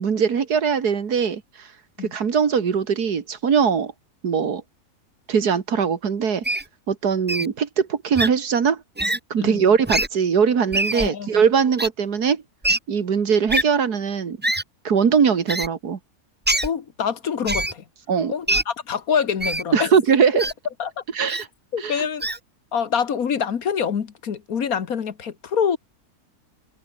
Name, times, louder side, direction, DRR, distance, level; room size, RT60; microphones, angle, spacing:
voice 1, 0.0-1.7 2.1-3.9 4.2-4.6 5.3-6.4 6.9-8.8 9.3-12.4 12.9-14.4 14.8-16.0 18.1-18.3 19.7-20.5 21.1-21.5 21.8-22.1, right 6 dB, 75° right, 2.3 m, -21 dB
Wild animals, 6.4-6.6 7.3-7.5 8.2-8.3 9.0-9.2 9.9-10.1 10.7-11.1 11.8-11.9 12.6-12.8 13.5-13.6 14.4-14.6 15.5-15.7 16.5-16.7 17.5-17.7 18.5-18.6 19.4-19.6 20.4-20.5 21.3-21.4 22.2-22.4, right 1 dB, 10° right, 0.6 m, -23 dB
voice 2, 10.9-11.4 16.6-17.8 18.3-19.9 20.8-21.0 21.7-22.3 22.7-25.8, left 7 dB, 65° left, 1.8 m, -25 dB
omnidirectional pair, 1.7 m